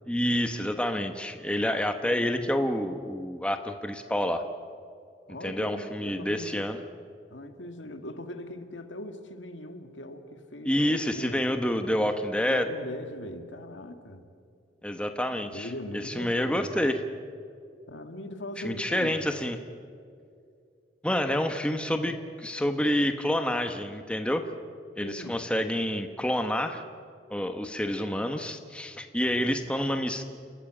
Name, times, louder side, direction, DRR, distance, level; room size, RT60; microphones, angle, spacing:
voice 1, 0.1-4.4 5.4-6.8 10.7-12.7 14.8-15.7 16.0-17.0 18.6-19.6 21.0-24.4 25.0-26.8 27.3-30.2, equal, 5° left, 7 dB, 1.0 m, -28 dB
voice 2, 5.3-6.7 7.3-11.4 12.5-14.3 15.4-16.9 17.9-19.3 25.0-25.4 29.2-29.4, left 1 dB, 85° left, 7 dB, 1.8 m, -40 dB
29.0 x 14.0 x 8.8 m, 2.4 s
head